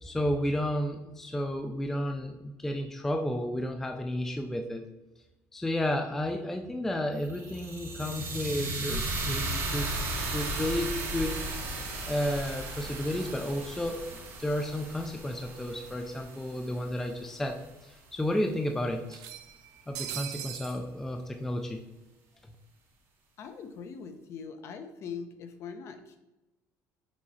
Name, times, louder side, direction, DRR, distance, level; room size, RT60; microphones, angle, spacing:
voice 1, 0.0-4.9 5.5-9.9 10.2-11.4 12.1-14.0 14.4-19.2 19.9-21.8, left 1 dB, 5° left, 4 dB, 0.4 m, -32 dB
sound 1, 7.2-17.3, right 2 dB, 35° right, 1.4 m, -36 dB
sound 2, 15.7-15.8 16.1-16.2 17.2-17.3 17.7-17.8 19.1-20.8, right 12 dB, 70° right, 0.6 m, -40 dB
voice 2, 23.4-26.2, left 6 dB, 45° left, 7 dB, 0.7 m, -42 dB
6.1 x 4.4 x 4.1 m, 1.0 s
cardioid pair, 165°, 7 cm